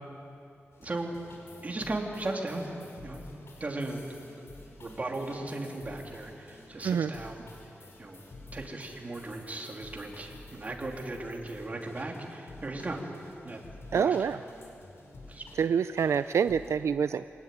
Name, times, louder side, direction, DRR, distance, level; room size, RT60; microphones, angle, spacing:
sound 1, 0.7-16.7, left 2 dB, 65° left, 5.2 m, -51 dB
voice 1, 0.8-1.2 1.6-2.7 3.0-3.2 3.6-4.0 4.8-7.4 8.0-8.2 8.5-13.0 13.4-13.6 13.9-14.2 15.3-15.4, right 2 dB, 35° right, 1 dB, 3.2 m, -36 dB
voice 2, 13.9-14.4 15.6-17.3, right 7 dB, 80° right, 12 dB, 0.5 m, -26 dB
26.0 x 19.0 x 9.3 m, 2.7 s
wide cardioid pair, 130°, 5 cm